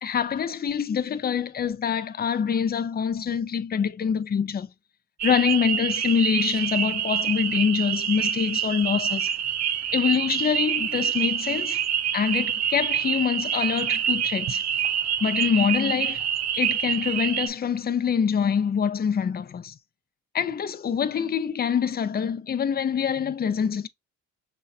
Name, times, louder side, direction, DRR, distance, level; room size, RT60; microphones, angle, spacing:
voice 1, 0.0-4.7 5.2-9.3 9.9-11.8 12.1-14.6 15.2-16.2 16.5-19.8 20.3-23.9, left 7 dB, 30° left, 0.5 m, -25 dB
sound 1, 5.2-17.5, right 9 dB, 60° right, 0.7 m, -26 dB
6.3 x 2.3 x 2.7 m
cardioid pair, 90°, 30 cm